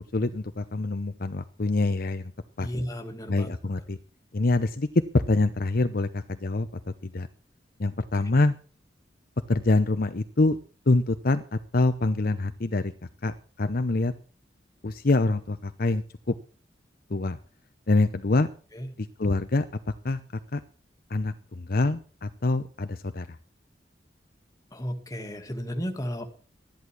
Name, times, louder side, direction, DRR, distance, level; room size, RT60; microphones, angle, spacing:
voice 1, 0.1-2.3 2.6-2.7 3.3-4.0 4.3-7.3 7.8-8.6 9.5-10.6 10.9-12.9 13.2-14.1 14.8-16.3 17.1-17.4 17.9-18.5 19.0-20.2 20.5-20.6 21.1-23.4, left 2 dB, 55° left, 10 dB, 0.8 m, -25 dB
voice 2, 2.6-3.5 18.7-18.9 24.7-26.3, equal, 20° left, 4 dB, 2.2 m, -33 dB
13.5 x 11.0 x 6.2 m, 0.39 s
head